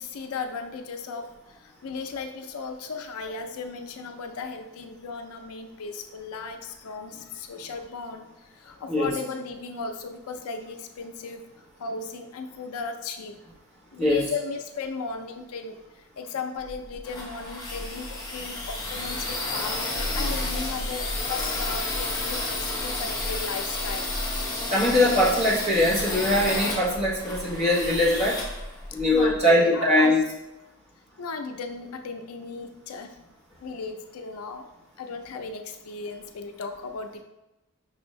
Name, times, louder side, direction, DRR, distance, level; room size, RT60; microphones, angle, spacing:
voice 1, 0.0-8.3 8.5-11.4 11.8-13.4 13.9-15.7 16.2-24.1 29.1-30.1 31.2-33.1 33.6-34.7 35.0-37.2, left 4 dB, 80° left, 6 dB, 0.4 m, -36 dB
sound 1, 16.6-29.4, left 2 dB, 15° left, 0.6 m, -31 dB
voice 2, 24.7-28.4 28.9-30.2, left 1 dB, 30° right, -7 dB, 1.1 m, -21 dB
5.5 x 2.6 x 3.0 m, 0.96 s
head